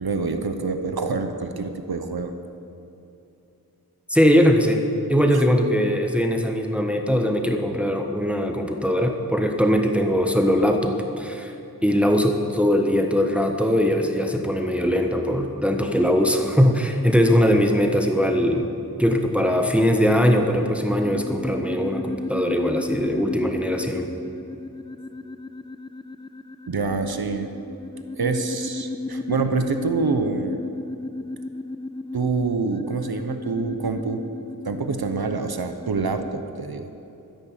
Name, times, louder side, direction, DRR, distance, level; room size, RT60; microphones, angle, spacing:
voice 1, 0.0-2.3 5.3-5.4 26.7-27.5 28.2-30.6 32.1-34.2 34.6-36.9, right 4 dB, 85° right, 7 dB, 0.9 m, -26 dB
voice 2, 4.1-4.8 5.1-11.5 11.8-18.7 19.0-24.1, equal, 5° right, 4 dB, 1.3 m, -21 dB
sound 1, 20.6-36.4, left 3 dB, 15° left, 0.3 m, -34 dB
13.0 x 10.5 x 7.4 m, 2.9 s
wide cardioid pair, 50°, 36 cm